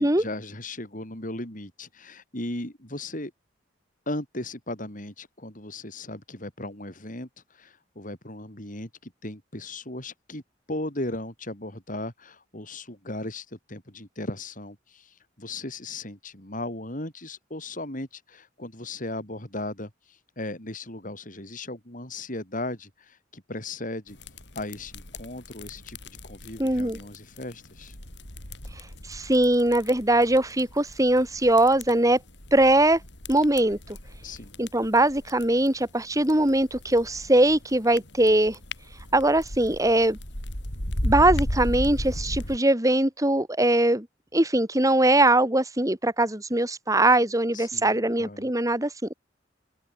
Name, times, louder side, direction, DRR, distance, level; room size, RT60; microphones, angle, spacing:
voice 1, 0.0-3.3 4.1-10.4 10.7-24.2 24.5-26.0 26.2-28.0 34.2-34.6 47.5-48.5, left 2 dB, 45° left, 6.7 m, -37 dB
sound 1, 24.1-42.6, left 1 dB, 70° left, 7.8 m, -36 dB
voice 2, 26.6-27.0 29.1-32.2 32.5-33.0 33.3-33.8 34.6-38.6 39.1-40.2 41.0-44.1 44.3-48.9, right 1 dB, 20° right, 3.4 m, -21 dB
open air
head